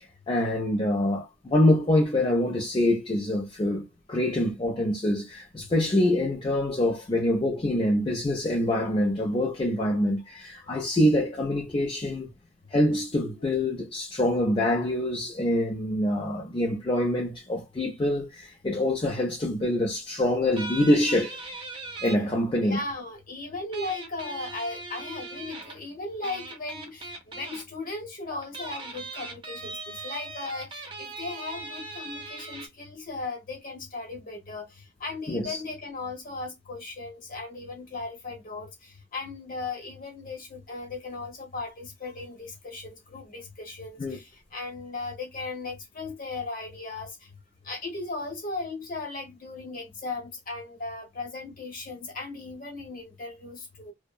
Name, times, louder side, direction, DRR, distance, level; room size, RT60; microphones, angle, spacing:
voice 1, 0.3-12.3 12.7-21.4 22.0-22.8 35.3-35.6 44.0-44.2, left 1 dB, 25° left, 0.4 m, -25 dB
sound 1, 20.6-22.2 23.7-25.8 26.2-27.6 28.4-32.7, right 3 dB, 25° right, 0.5 m, -39 dB
voice 2, 22.6-34.7 35.0-47.1 47.6-53.9, left 3 dB, 45° left, 1.1 m, -37 dB
2.7 x 2.1 x 2.2 m
head